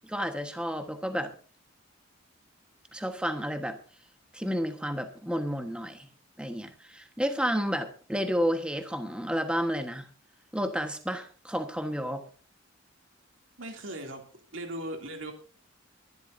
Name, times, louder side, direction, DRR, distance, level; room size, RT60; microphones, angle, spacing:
voice 1, 0.1-1.3 2.9-3.8 4.3-6.1 6.4-10.1 10.5-12.2, equal, 5° right, 6 dB, 1.3 m, -31 dB
voice 2, 13.6-14.2 14.5-15.3, right 1 dB, 75° right, 3 dB, 2.7 m, -38 dB
24.0 x 12.0 x 2.7 m, 0.38 s
head